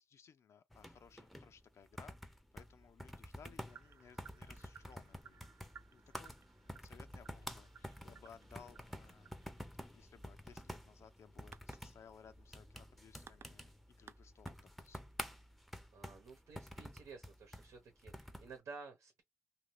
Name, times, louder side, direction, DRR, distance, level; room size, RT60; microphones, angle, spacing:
voice 1, 0.0-6.4 6.6-9.4 9.8-15.1, left 7 dB, 65° left, 0.4 m, -61 dB
sound 1, 0.7-18.5, equal, ahead, 0.6 m, -50 dB
sound 2, 3.7-15.2, right 7 dB, 55° right, 0.4 m, -62 dB
voice 2, 15.9-19.2, right 4 dB, 85° right, 1.1 m, -53 dB
2.8 x 2.5 x 3.1 m
cardioid pair, 95°, 5 cm